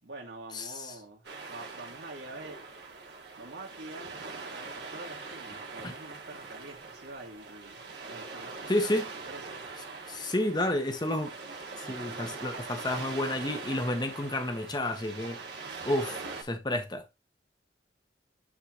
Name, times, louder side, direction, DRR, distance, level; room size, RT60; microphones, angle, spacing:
voice 1, 0.0-2.7 3.4-8.9 9.2-9.6, right 2 dB, 85° right, 2.0 m, -46 dB
sound 1, 1.2-16.4, right 4 dB, 70° right, 1.6 m, -42 dB
voice 2, 8.7-9.1 10.1-11.3 11.8-15.4 15.8-17.0, left 1 dB, 25° left, 1.0 m, -30 dB
9.7 x 3.8 x 3.0 m
head